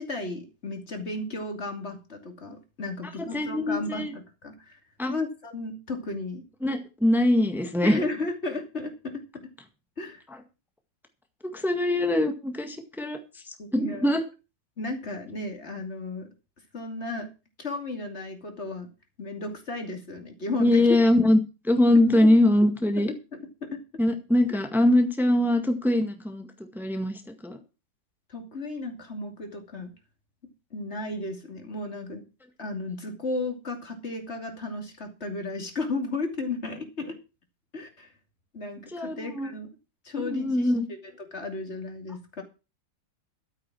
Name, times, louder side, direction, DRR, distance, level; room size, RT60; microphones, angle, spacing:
voice 1, 0.0-4.8 5.1-6.4 7.8-9.2 10.0-10.2 13.6-14.1 14.8-16.3 16.7-17.3 17.6-18.9 19.2-20.9 22.2-22.3 23.0-23.8 28.3-29.9 30.7-32.2 32.6-37.2 37.7-38.1 38.5-39.7 40.0-42.4, left 2 dB, 35° left, 4 dB, 3.0 m, -34 dB
voice 2, 3.2-4.1 5.0-5.1 6.6-8.0 11.5-14.2 20.6-21.4 21.6-23.1 24.0-27.6 38.9-39.5 40.2-40.9, left 1 dB, ahead, 6 dB, 1.6 m, -23 dB
12.5 x 8.9 x 6.2 m, 0.31 s
omnidirectional pair, 1.9 m